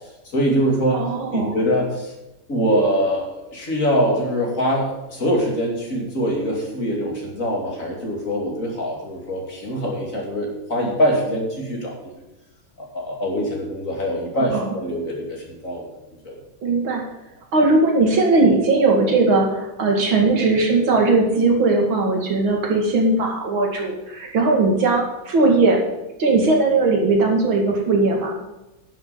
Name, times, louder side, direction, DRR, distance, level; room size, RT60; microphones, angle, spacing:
voice 1, 0.3-1.0 1.3-2.1 2.5-12.1 12.8-15.9 16.2-16.3, equal, 40° left, -1 dB, 3.1 m, -23 dB
voice 2, 0.9-1.6 14.5-14.7 16.6-17.0 17.5-25.8 26.2-28.3, right 3 dB, 85° right, 0 dB, 3.0 m, -18 dB
11.0 x 6.7 x 7.0 m, 1.0 s
omnidirectional pair, 2.1 m